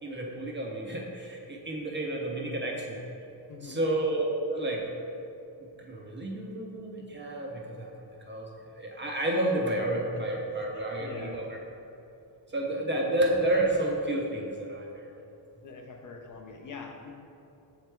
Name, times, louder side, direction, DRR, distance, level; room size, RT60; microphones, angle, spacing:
voice 1, 0.0-3.0 3.6-4.9 5.8-7.9 8.3-8.5 8.7-11.6 12.5-14.9, right 1 dB, 25° right, -1 dB, 0.4 m, -30 dB
voice 2, 3.5-3.9 10.1-10.2 10.5-11.4 13.1-13.2 15.6-17.1, left 5 dB, 45° left, 2 dB, 0.5 m, -45 dB
7.1 x 3.3 x 4.3 m, 2.8 s
wide cardioid pair, 180°, 43 cm